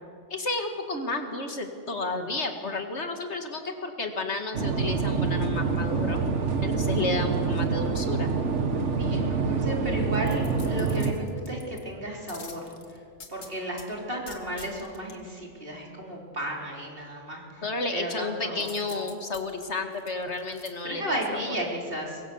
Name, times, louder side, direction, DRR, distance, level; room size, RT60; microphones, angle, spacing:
voice 1, 0.3-6.2 6.6-8.3 17.6-21.0 21.3-21.6, left 3 dB, 60° left, 5 dB, 2.1 m, -32 dB
sound 1, 4.5-11.1, right 4 dB, 65° right, 1.8 m, -26 dB
voice 2, 9.0-13.0 13.3-17.6 17.9-18.7 20.8-22.2, equal, 45° right, -1 dB, 4.3 m, -34 dB
sound 2, 10.2-11.8 12.3-13.9 14.3-15.2 18.6-20.7 21.2-21.3, left 4 dB, 80° left, 2.4 m, -46 dB
24.0 x 23.0 x 7.1 m, 2.3 s
omnidirectional pair, 1.3 m